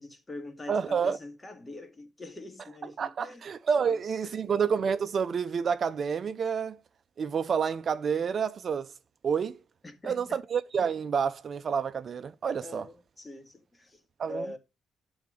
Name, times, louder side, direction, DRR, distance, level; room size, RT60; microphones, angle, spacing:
voice 1, 0.0-3.4 3.8-4.5 9.8-10.4 12.6-14.0 14.3-14.6, left 2 dB, 20° left, 1.6 m, -44 dB
voice 2, 0.7-1.2 3.0-6.8 7.2-8.9 9.2-9.6 10.0-12.8 14.2-14.4, right 6 dB, 50° right, 0.5 m, -29 dB
9.5 x 3.9 x 4.9 m
cardioid pair, 90°, 0 cm